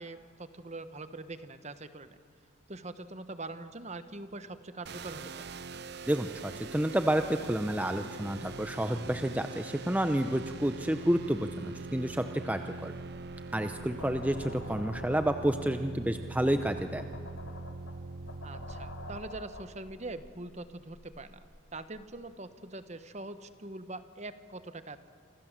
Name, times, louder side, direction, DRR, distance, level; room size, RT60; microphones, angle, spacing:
voice 1, 0.0-2.2 2.7-5.2 13.9-14.1 18.4-21.4 21.7-25.0, right 2 dB, 35° right, 11 dB, 1.2 m, -43 dB
sound 1, 4.9-19.2, right 3 dB, 50° right, 0.7 m, -42 dB
voice 2, 6.1-12.9 13.5-17.0, right 1 dB, 5° right, 7 dB, 0.7 m, -30 dB
sound 2, 13.8-22.1, left 2 dB, 75° left, 2.6 m, -49 dB
27.5 x 26.0 x 7.5 m, 2.2 s
head